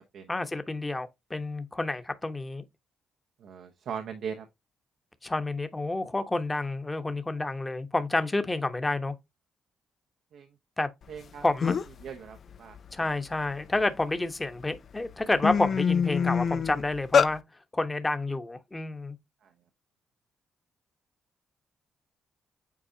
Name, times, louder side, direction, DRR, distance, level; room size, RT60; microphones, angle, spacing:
voice 1, 0.3-2.6 5.2-9.1 10.8-10.9 11.4-11.7 12.9-17.4 17.7-19.2, left 2 dB, 20° left, 1.1 m, -29 dB
voice 2, 3.4-4.5 10.3-10.5 11.1-11.4 12.0-12.8 19.4-19.5, right 7 dB, 75° right, 0.9 m, -39 dB
sound 1, 11.2-11.3 11.6-12.0 12.5-14.0 14.6-14.8 15.1-17.3, left 6 dB, 60° left, 0.5 m, -25 dB
8.6 x 4.1 x 2.8 m
cardioid pair, 70°, 0 cm